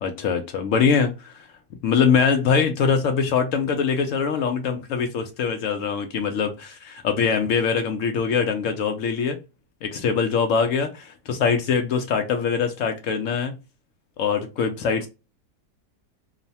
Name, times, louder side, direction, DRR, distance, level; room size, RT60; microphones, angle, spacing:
voice 1, 0.0-1.5 1.8-9.4 9.8-13.5 14.2-15.1, left 6 dB, 70° left, 0.7 m, -23 dB
3.0 x 2.0 x 2.7 m
omnidirectional pair, 1.8 m